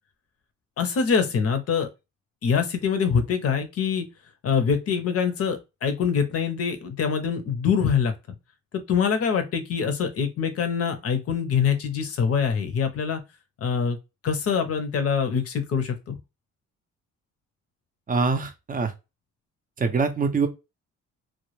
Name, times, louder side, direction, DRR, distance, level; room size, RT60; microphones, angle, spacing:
voice 1, 0.8-1.9 2.4-4.1 4.4-8.1 8.9-13.2 13.6-14.0 14.2-16.2, left 6 dB, 50° left, 0.6 m, -24 dB
voice 2, 18.1-18.9 19.8-20.5, right 4 dB, 30° right, 0.5 m, -24 dB
2.1 x 2.0 x 3.0 m
cardioid pair, 90°, 30 cm